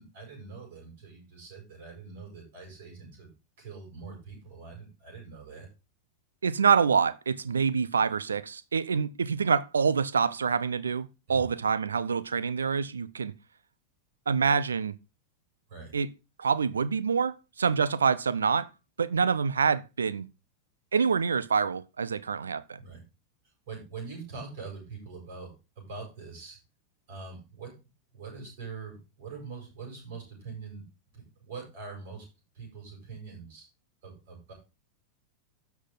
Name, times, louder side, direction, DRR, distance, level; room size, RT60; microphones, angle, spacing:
voice 1, 0.0-3.3 3.6-5.7 11.3-11.4 15.7-15.9 22.8-23.0 23.6-26.6 27.1-27.7 28.1-30.8 31.1-32.2 32.5-33.7 34.0-34.5, right 4 dB, 55° right, 8.0 m, -43 dB
voice 2, 6.4-13.3 14.3-15.0 15.9-16.1 16.4-18.7 19.0-20.3 20.9-22.8, right 6 dB, 70° right, 0.6 m, -26 dB
12.5 x 7.2 x 3.8 m
figure-of-eight pair, 90°, 0 cm